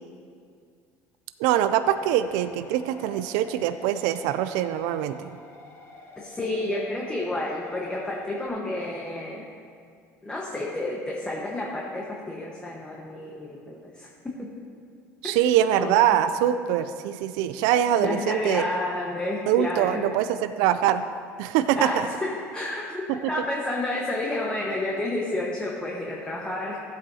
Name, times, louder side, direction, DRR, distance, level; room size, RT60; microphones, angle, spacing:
voice 1, 1.4-5.3 15.2-18.6 19.5-21.0 21.4-22.1, right 11 dB, 80° right, 11 dB, 0.4 m, -23 dB
sound 1, 1.8-8.5, left 3 dB, 45° left, 1.7 m, -47 dB
voice 2, 6.2-9.5 10.2-14.1 14.4-14.5 15.8-16.0 17.9-20.0 21.7-26.8, left 2 dB, 15° left, -2 dB, 1.3 m, -30 dB
15.0 x 8.3 x 2.8 m, 2.2 s
supercardioid pair, 105°, 7 cm